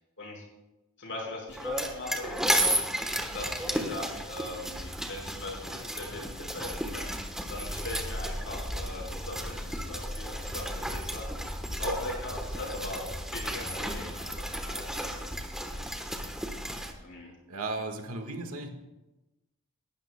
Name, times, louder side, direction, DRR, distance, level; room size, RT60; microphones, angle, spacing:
voice 1, 1.0-2.5 3.3-7.2 7.5-11.3 11.8-13.0 13.3-15.2 15.7-16.1 17.0-17.3, left 2 dB, 60° left, -2 dB, 5.0 m, -40 dB
sound 1, 1.5-16.9, equal, 5° right, 1.1 m, -33 dB
voice 2, 17.2-18.7, right 2 dB, 80° right, 4 dB, 1.5 m, -36 dB
18.5 x 12.0 x 2.2 m, 1.0 s
head